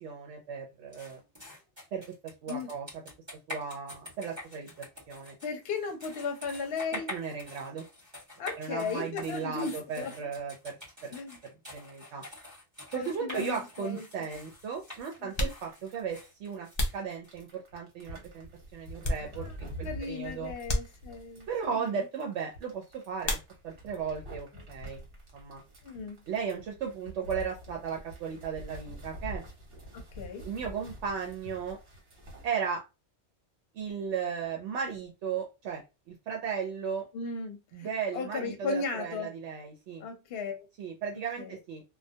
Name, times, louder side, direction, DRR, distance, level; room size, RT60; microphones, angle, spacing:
voice 1, 0.0-1.2 1.9-2.9 3.5-4.7 5.1-5.3 7.1-7.8 8.6-10.8 11.0-11.1 11.7-12.2 12.9-16.7 16.9-20.5 21.5-23.4 23.6-25.0 25.3-25.6 26.3-29.4 30.4-31.8 32.4-32.8 33.7-35.8 36.1-37.0 37.7-40.0 40.8-41.8, right 6 dB, 80° right, 0.9 m, -36 dB
sound 1, 0.9-17.3, left 2 dB, 25° right, 0.9 m, -46 dB
voice 2, 5.4-7.1 8.4-10.3 11.1-11.4 12.9-14.0 15.2-15.3 19.4-19.5 19.8-22.0 25.8-26.2 29.9-30.5 37.1-39.3 40.0-40.6 41.4-41.6, left 5 dB, 65° left, 0.8 m, -36 dB
sound 2, 13.9-32.5, equal, 60° right, 1.1 m, -46 dB
sound 3, 15.2-17.8 18.4-19.7 20.0-20.2 20.6-21.5 23.2-24.0 24.3-25.0 25.2-27.4, left 1 dB, 45° left, 0.3 m, -36 dB
2.2 x 2.2 x 2.6 m
omnidirectional pair, 1.2 m